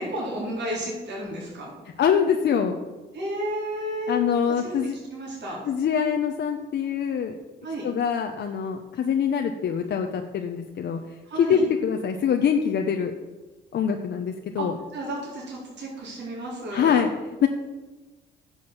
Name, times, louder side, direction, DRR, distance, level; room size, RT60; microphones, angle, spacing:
voice 1, 0.0-1.7 3.1-4.2 4.6-4.8 5.1-5.6 7.6-7.9 11.2-11.6 14.6-17.1, right 1 dB, 60° right, -4 dB, 4.2 m, -32 dB
voice 2, 2.0-2.8 4.1-5.0 5.7-7.4 7.8-11.0 11.3-13.1 13.7-14.7 16.7-17.1 17.4-17.5, left 7 dB, 60° left, 4 dB, 0.9 m, -24 dB
10.5 x 6.3 x 7.1 m, 1.2 s
cardioid pair, 90°, 20 cm